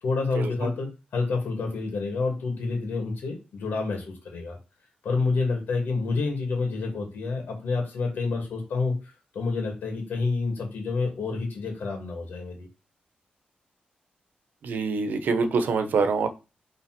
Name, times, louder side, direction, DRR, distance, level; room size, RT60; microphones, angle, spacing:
voice 1, 0.0-4.6 5.0-12.7, left 3 dB, 85° left, 1 dB, 2.5 m, -28 dB
voice 2, 14.6-16.3, right 4 dB, 75° right, 9 dB, 1.1 m, -25 dB
5.8 x 3.9 x 6.1 m, 0.28 s
wide cardioid pair, 165°, 3 cm